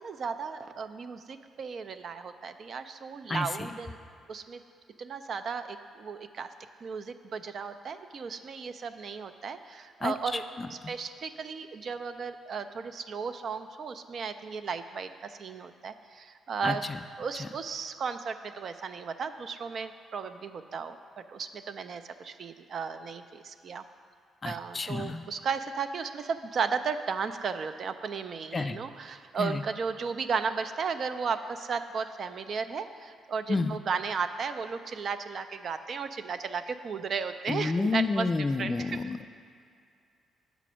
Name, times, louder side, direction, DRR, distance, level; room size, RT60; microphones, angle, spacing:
voice 1, 0.0-4.0 4.3-4.6 5.0-6.5 6.8-10.4 10.7-16.9 17.2-23.8 24.4-38.3 38.6-39.0, right 5 dB, 55° right, 10 dB, 0.4 m, -35 dB
voice 2, 3.3-3.8 10.0-10.9 16.6-17.0 17.4-17.5 24.4-25.3 28.5-28.8 29.4-29.6 33.5-33.8 37.5-39.4, left 3 dB, 30° left, 10 dB, 0.3 m, -31 dB
6.7 x 5.1 x 6.2 m, 2.3 s
cardioid pair, 90°, 0 cm